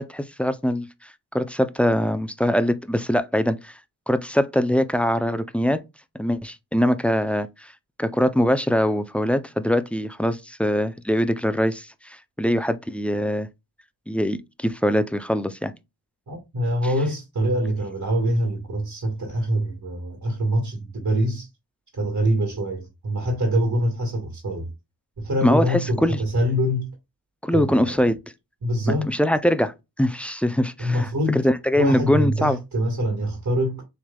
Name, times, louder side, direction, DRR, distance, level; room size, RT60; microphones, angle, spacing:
voice 1, 0.0-3.7 4.1-5.8 6.2-7.7 8.0-13.5 14.1-15.7 25.4-26.2 27.4-28.2 29.1-32.6, equal, 5° left, 0.3 m, -23 dB
voice 2, 16.3-21.5 21.9-24.7 25.2-26.9 27.5-28.0 28.6-29.1 30.8-31.4 31.7-33.8, equal, 50° right, 1.7 m, -24 dB
7.1 x 3.3 x 2.2 m
wide cardioid pair, 120°, 41 cm